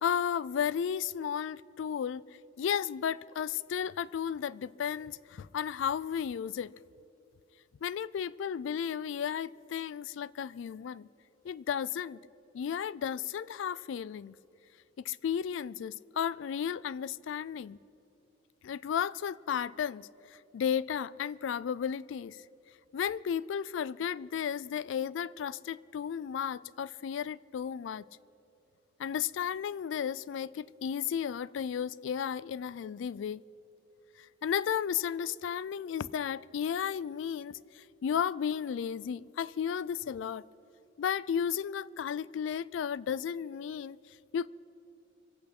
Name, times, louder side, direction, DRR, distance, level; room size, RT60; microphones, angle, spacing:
voice 1, 0.0-2.2 2.6-6.7 7.8-11.1 11.4-12.2 12.5-14.3 15.1-17.8 18.6-20.1 20.5-22.4 22.9-28.0 29.0-33.4 34.4-40.4 41.0-44.0 44.3-44.5, left 8 dB, 75° left, 0.3 m, -33 dB
25.0 x 8.4 x 5.9 m
head